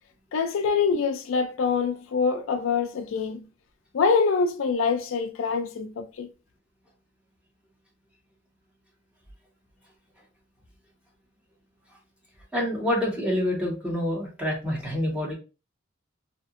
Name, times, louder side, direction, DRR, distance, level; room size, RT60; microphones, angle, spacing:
voice 1, 0.3-3.5 3.9-6.3, left 5 dB, 75° left, 0.4 m, -25 dB
voice 2, 12.5-15.3, left 1 dB, 5° right, 1.1 m, -27 dB
2.8 x 2.5 x 2.5 m
head